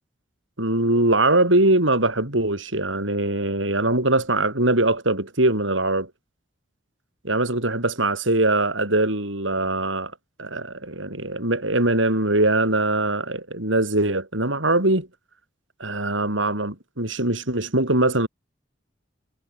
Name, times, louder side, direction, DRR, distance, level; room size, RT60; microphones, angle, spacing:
voice 1, 0.6-6.1 7.2-10.1 10.4-15.1 15.8-18.3, right 2 dB, 90° right, 8.0 m, -22 dB
head